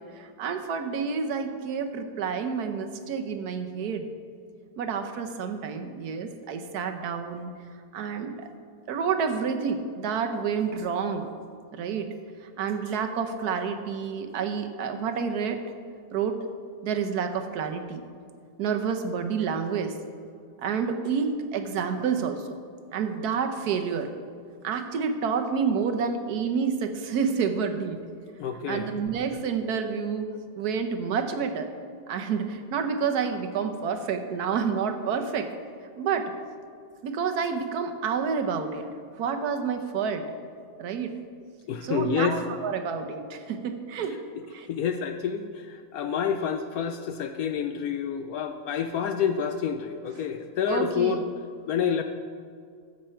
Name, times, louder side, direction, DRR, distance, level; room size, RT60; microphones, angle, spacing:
voice 1, 0.1-4.0 4.8-7.5 7.9-8.5 8.9-11.3 11.7-12.1 12.4-15.6 16.1-16.4 16.8-18.0 18.6-19.9 20.6-22.5 22.9-24.1 24.6-28.0 28.7-30.3 30.6-31.7 32.1-35.5 36.0-36.3 37.0-38.9 39.2-40.3 40.8-41.2 41.8-44.2 44.5-44.7 50.7-51.2, right 6 dB, 60° right, 7 dB, 1.2 m, -29 dB
voice 2, 28.4-28.9 41.7-42.4 44.7-51.2 51.7-52.0, left 7 dB, 80° left, 8 dB, 0.8 m, -28 dB
13.5 x 7.4 x 4.4 m, 2.2 s
omnidirectional pair, 2.1 m